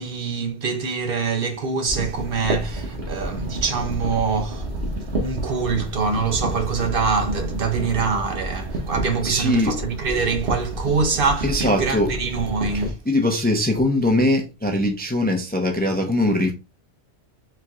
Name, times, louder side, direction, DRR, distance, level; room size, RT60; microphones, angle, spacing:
voice 1, 0.0-4.7 5.0-13.0, right 5 dB, 60° right, 0.9 m, -24 dB
sound 1, 1.9-12.9, right 1 dB, 75° right, 1.3 m, -30 dB
voice 2, 9.2-9.7 11.4-12.1 13.1-16.5, left 1 dB, 10° left, 0.5 m, -21 dB
4.5 x 3.8 x 2.3 m
omnidirectional pair, 1.1 m